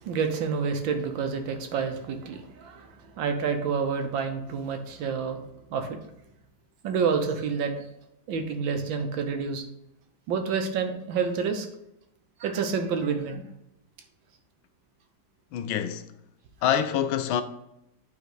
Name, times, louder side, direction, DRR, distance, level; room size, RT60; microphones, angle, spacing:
voice 1, 0.0-6.0 6.8-7.8 8.3-9.6 10.3-11.7 12.4-13.4, right 5 dB, 70° right, 1.5 m, -29 dB
voice 2, 15.5-16.0 16.6-17.4, left 9 dB, 75° left, 1.3 m, -25 dB
9.1 x 3.6 x 4.9 m
omnidirectional pair, 2.3 m